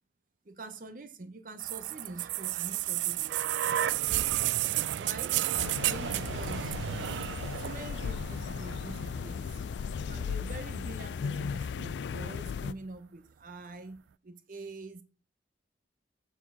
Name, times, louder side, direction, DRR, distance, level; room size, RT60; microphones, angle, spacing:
voice 1, 0.4-3.7 4.9-5.4 5.8-6.8 7.5-9.7 9.9-15.0, right 2 dB, 50° right, 0.8 m, -45 dB
sound 1, 1.6-9.5 10.5-10.6, right 13 dB, 85° right, 0.3 m, -32 dB
sound 2, 5.6-12.7, left 6 dB, 80° left, 0.3 m, -36 dB
7.1 x 4.4 x 6.0 m
head